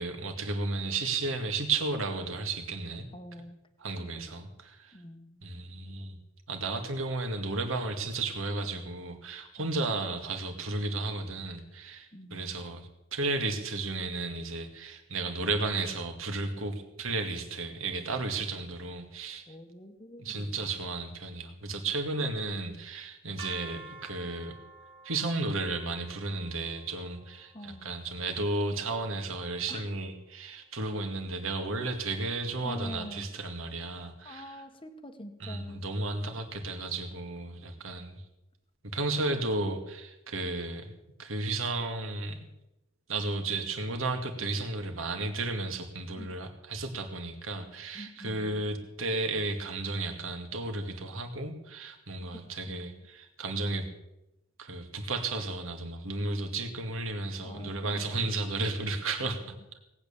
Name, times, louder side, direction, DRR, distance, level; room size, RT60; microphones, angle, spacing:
voice 1, 0.0-3.1 3.8-4.9 5.4-6.2 6.5-19.4 20.2-24.5 25.0-34.4 35.4-38.2 38.8-40.9 41.2-42.5 43.1-53.9 54.6-59.4, right 3 dB, 70° right, 5 dB, 2.2 m, -33 dB
voice 2, 3.1-3.6 3.9-4.3 4.9-5.4 12.1-12.5 19.5-20.7 27.5-27.9 29.7-29.8 32.6-33.3 34.2-35.8 46.2-46.3 47.9-48.7 52.5-53.1 57.4-58.4 59.4-59.7, left 1 dB, 25° left, 7 dB, 1.2 m, -46 dB
sound 1, 23.4-29.3, right 4 dB, 25° right, 1.8 m, -50 dB
18.5 x 9.0 x 7.1 m, 0.92 s
head